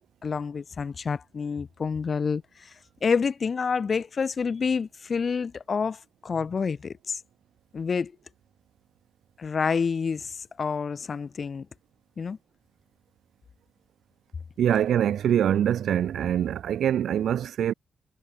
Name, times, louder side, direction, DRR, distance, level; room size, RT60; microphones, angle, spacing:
voice 1, 0.2-2.7 3.0-7.2 7.7-8.1 9.4-11.7 12.2-12.4, left 5 dB, 45° left, 0.4 m, -28 dB
voice 2, 14.6-17.7, right 10 dB, 80° right, 1.0 m, -24 dB
cardioid pair, 100°, 0 cm